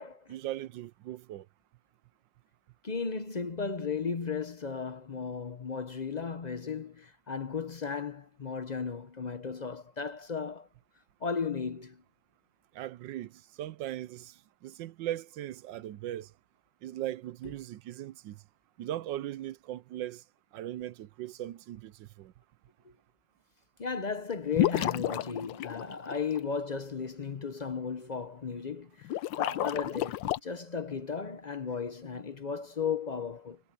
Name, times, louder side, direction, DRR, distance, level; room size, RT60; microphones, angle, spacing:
voice 1, 0.3-1.5 12.7-14.3 14.6-16.3 16.8-18.4 18.8-20.2 20.5-22.3, right 13 dB, 80° right, 1.3 m, -39 dB
voice 2, 2.8-10.7 11.2-12.0 17.4-17.5 22.8-22.9 23.8-33.6, left 5 dB, 45° left, 0.5 m, -35 dB
sound 1, 24.5-26.4 29.0-30.4, left 13 dB, 85° left, 1.4 m, -31 dB
omnidirectional pair, 2.0 m